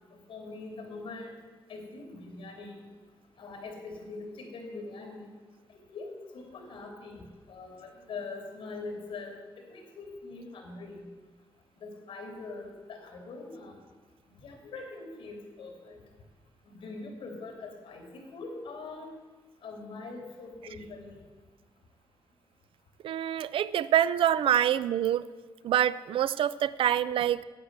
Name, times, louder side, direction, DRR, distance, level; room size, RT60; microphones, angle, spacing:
voice 1, 0.1-1.3 1.7-2.9 3.4-5.3 5.7-11.1 11.8-13.8 14.4-16.0 16.6-19.1 19.6-21.3, left 3 dB, 85° left, 3 dB, 3.1 m, -43 dB
voice 2, 23.0-25.3 25.6-27.4, right 10 dB, 80° right, 16 dB, 0.4 m, -26 dB
9.8 x 8.8 x 8.1 m, 1.3 s
wide cardioid pair, 130°, 9 cm